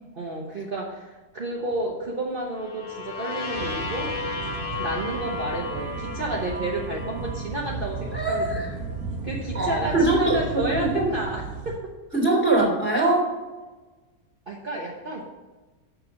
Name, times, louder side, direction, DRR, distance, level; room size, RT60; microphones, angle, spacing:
voice 1, 0.1-4.1 4.8-8.7 9.2-11.9 14.5-15.2, right 2 dB, 40° right, -3 dB, 1.2 m, -31 dB
sound 1, 2.5-8.4, left 3 dB, 40° left, 1.2 m, -34 dB
sound 2, 3.6-11.8, right 4 dB, 75° right, 1.7 m, -34 dB
voice 2, 8.1-8.7 9.5-10.4 10.7-11.1 12.1-13.2, right 2 dB, 5° left, -2 dB, 2.7 m, -22 dB
6.7 x 6.6 x 7.2 m, 1.2 s
omnidirectional pair, 1.6 m